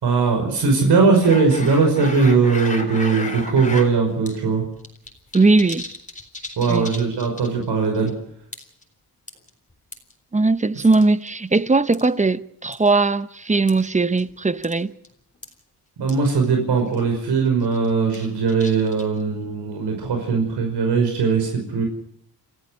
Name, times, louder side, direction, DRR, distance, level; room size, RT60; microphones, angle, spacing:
voice 1, 0.0-4.6 6.6-8.1 10.7-10.8 16.0-21.8, right 4 dB, 80° right, 5.7 m, -19 dB
sound 1, 1.2-3.9 4.3-4.4 4.6-7.6 7.9-8.1 8.5-8.8 9.3-10.1 10.9-11.6 11.9-12.1 12.7-12.9 13.7-13.8 14.2-14.3 14.6-14.8 15.0-15.1 15.4-15.5 16.1-16.2 16.4-16.5 16.9-17.1 17.6-19.2, left 2 dB, 20° left, 3.7 m, -34 dB
voice 2, 5.3-5.9 6.7-6.9 10.3-14.9, right 3 dB, 20° right, 0.8 m, -19 dB
28.5 x 14.5 x 6.5 m
cardioid pair, 100°, 40 cm